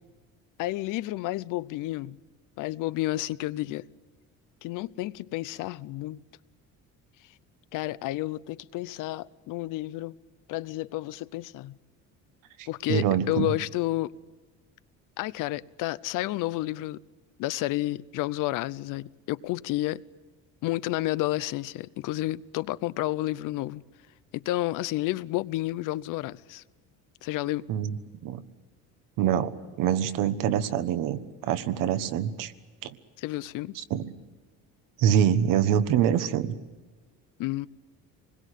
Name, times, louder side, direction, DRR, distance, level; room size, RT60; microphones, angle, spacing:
voice 1, 0.6-2.2 2.6-3.9 4.6-6.2 7.7-10.2 10.5-11.8 12.7-14.1 15.2-17.0 17.4-20.0 20.6-23.8 24.3-26.6 27.2-27.7 33.2-33.8 37.4-37.7, left 17 dB, 75° left, 0.7 m, -31 dB
voice 2, 12.6-13.5 27.7-28.0 28.2-28.4 29.2-29.5 29.8-32.5 32.8-32.9 33.9-34.0 35.0-36.5, right 9 dB, 80° right, 1.5 m, -25 dB
26.5 x 21.0 x 8.3 m
cardioid pair, 170°, 32 cm